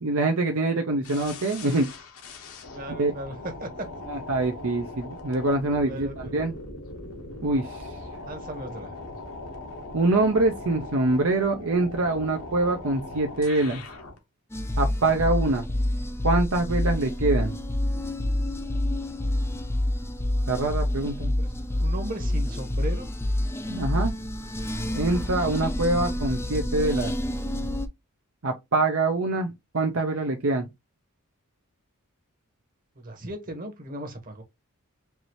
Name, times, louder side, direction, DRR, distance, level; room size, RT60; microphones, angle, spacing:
voice 1, 0.0-1.9 3.0-3.1 4.1-6.5 7.4-7.8 9.9-13.8 14.8-15.7 16.2-17.6 20.5-21.3 23.7-24.1 24.9-27.1 28.4-30.7, right 2 dB, 65° right, 0.7 m, -24 dB
sound 1, 1.0-14.2, left 2 dB, 75° left, 1.2 m, -40 dB
voice 2, 2.7-3.9 5.9-6.3 8.2-8.9 21.2-21.5 21.8-23.1 33.0-34.4, right 1 dB, 40° right, 1.2 m, -37 dB
sound 2, 14.5-27.9, left 1 dB, 10° left, 0.5 m, -28 dB
4.7 x 2.7 x 3.0 m
head